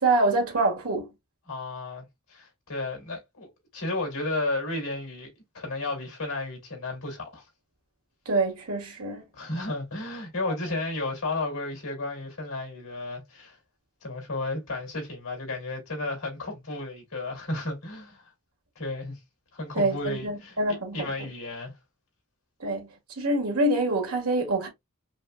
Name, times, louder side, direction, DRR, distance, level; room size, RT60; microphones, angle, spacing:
voice 1, 0.0-1.1 8.2-9.2 10.4-10.5 19.7-21.0 22.6-22.9 23.2-24.7, right 2 dB, 85° right, 1.8 m, -25 dB
voice 2, 1.5-5.3 5.5-7.5 9.3-13.6 14.0-18.3 18.8-19.2 19.5-20.6 20.9-21.7, left 2 dB, 80° left, 2.6 m, -33 dB
5.3 x 2.2 x 2.3 m
head